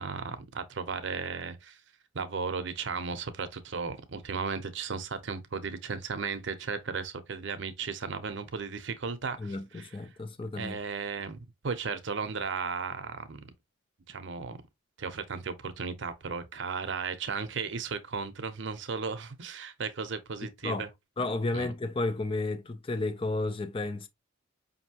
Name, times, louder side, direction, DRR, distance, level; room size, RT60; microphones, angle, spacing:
voice 1, 0.0-1.8 2.1-10.0 10.6-13.4 14.1-14.6 15.0-20.9 21.5-21.7, right 5 dB, 60° right, 0.6 m, -35 dB
voice 2, 9.4-10.8 20.6-20.8 21.2-24.1, left 2 dB, 25° left, 0.4 m, -32 dB
5.3 x 2.7 x 2.8 m
head